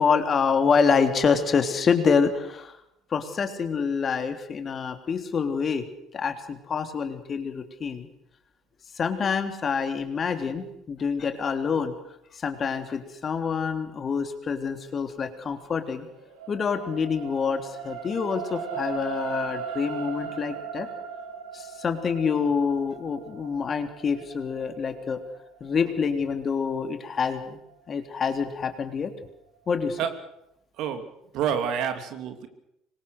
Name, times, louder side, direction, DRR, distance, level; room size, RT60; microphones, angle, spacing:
voice 1, 0.0-2.7 3.1-5.9 6.1-8.1 8.9-11.9 12.3-16.1 16.5-20.9 21.5-25.2 25.6-27.6 27.9-29.1 29.7-30.0, left 5 dB, 40° left, 7 dB, 3.3 m, -26 dB
sound 1, 15.6-28.1 28.6-28.7, right 6 dB, 80° right, 7.9 m, -38 dB
voice 2, 31.3-32.5, right 8 dB, 60° right, 7 dB, 3.1 m, -28 dB
26.0 x 22.0 x 6.6 m, 0.80 s
hypercardioid pair, 60°, 0 cm